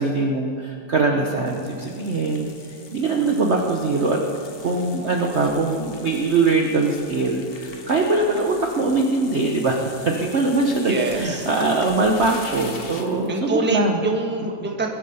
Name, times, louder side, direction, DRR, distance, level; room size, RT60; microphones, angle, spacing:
voice 1, 0.0-2.5 2.9-4.2 4.6-14.0, right 3 dB, 45° right, 1 dB, 0.9 m, -22 dB
sound 1, 1.5-13.3, left 4 dB, 40° left, 1.0 m, -42 dB
voice 2, 10.8-11.5 13.3-14.9, right 2 dB, 5° right, 1 dB, 1.0 m, -25 dB
21.0 x 8.5 x 5.5 m, 2.5 s
omnidirectional pair, 2.1 m